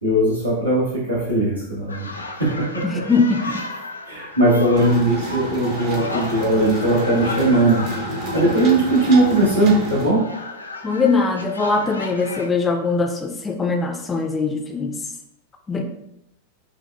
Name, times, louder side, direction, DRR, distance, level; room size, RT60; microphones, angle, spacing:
voice 1, 0.0-2.1 2.4-3.0 4.1-7.8 8.3-10.2, right 1 dB, 85° right, -6 dB, 1.3 m, -19 dB
sound 1, 1.9-12.5, left 3 dB, 80° left, 0.4 m, -34 dB
voice 2, 2.8-3.6 10.8-15.0 15.7-15.8, left 4 dB, 15° left, 4 dB, 0.4 m, -21 dB
sound 2, 4.7-10.1, equal, 45° right, 0.8 m, -30 dB
5.5 x 2.3 x 2.2 m, 0.80 s
figure-of-eight pair, 90°, 0 cm